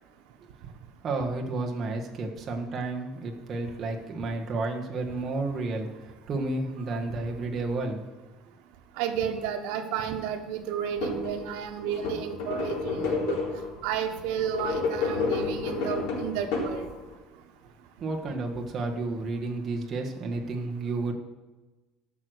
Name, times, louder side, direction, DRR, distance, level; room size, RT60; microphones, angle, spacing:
voice 1, 1.0-8.0 18.0-21.1, right 3 dB, 25° right, 1 dB, 1.5 m, -31 dB
voice 2, 9.0-13.4 13.8-16.9, right 8 dB, 75° right, 6 dB, 1.3 m, -32 dB
sound 1, 10.8-11.4 11.8-13.7 14.4-17.1, left 4 dB, 70° left, 4.0 m, -30 dB
14.0 x 6.3 x 6.5 m, 1.2 s
cardioid pair, 175°, 0 cm